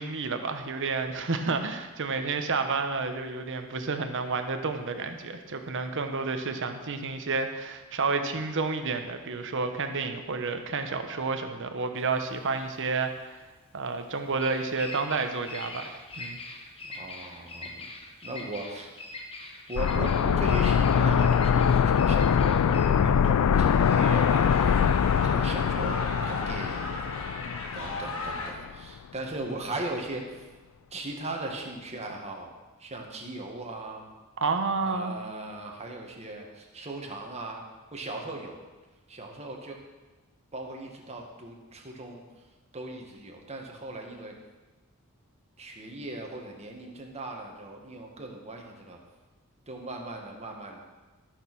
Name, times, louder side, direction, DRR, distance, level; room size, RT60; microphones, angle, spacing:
voice 1, 0.0-13.4 13.7-16.4 34.4-35.1, right 4 dB, 60° right, 7 dB, 1.0 m, -30 dB
Bird vocalization bird call bird song, 12.0-25.3, left 2 dB, 25° left, 1.2 m, -43 dB
voice 2, 16.8-17.9 18.2-18.9 19.7-24.5 25.2-27.3 27.7-30.5 30.9-32.5 32.8-34.1 34.8-37.6 37.9-38.6 39.1-39.8 40.5-42.5 42.7-44.4 45.6-49.0 49.7-50.8, right 2 dB, 30° right, 1 dB, 1.8 m, -38 dB
sound 1, 19.8-28.5 28.7-28.8, left 7 dB, 85° left, 0.4 m, -23 dB
sound 2, 23.5-28.5, left 2 dB, 65° left, 1.8 m, -36 dB
14.0 x 6.5 x 6.2 m, 1.2 s
head